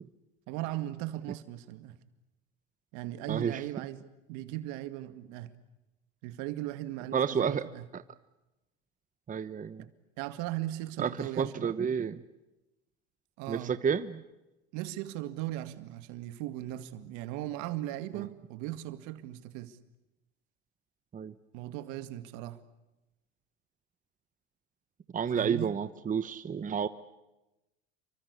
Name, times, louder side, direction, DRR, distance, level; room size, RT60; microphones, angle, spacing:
voice 1, 0.5-2.0 2.9-5.5 6.2-7.8 9.8-9.9 10.2-11.7 13.4-13.7 14.7-19.8 21.5-22.6 25.3-25.7, right 14 dB, 65° right, 2.1 m, -38 dB
voice 2, 3.3-3.6 7.1-7.6 7.9-8.0 9.3-9.9 11.0-12.2 13.5-14.2 18.1-18.3 21.1-21.3 25.1-26.9, right 7 dB, 25° right, 1.1 m, -30 dB
29.0 x 24.0 x 8.3 m
hypercardioid pair, 90°, 31 cm